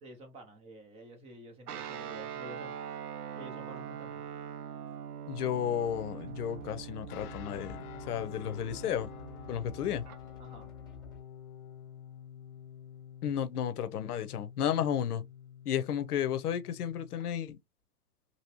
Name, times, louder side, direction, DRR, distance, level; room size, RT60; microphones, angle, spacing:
voice 1, 0.0-2.8 3.4-4.2 10.4-10.7, right 1 dB, 15° right, 0.5 m, -50 dB
Guitar, 1.7-10.2, right 8 dB, 80° right, 0.7 m, -43 dB
voice 2, 5.3-9.1 9.5-10.0 13.2-15.2 15.7-17.6, left 9 dB, 80° left, 0.7 m, -33 dB
sound 1, 5.9-11.4, left 2 dB, 10° left, 1.0 m, -53 dB
sound 2, 7.1-17.3, left 9 dB, 40° left, 0.5 m, -49 dB
2.9 x 2.8 x 2.8 m
hypercardioid pair, 135°, 45 cm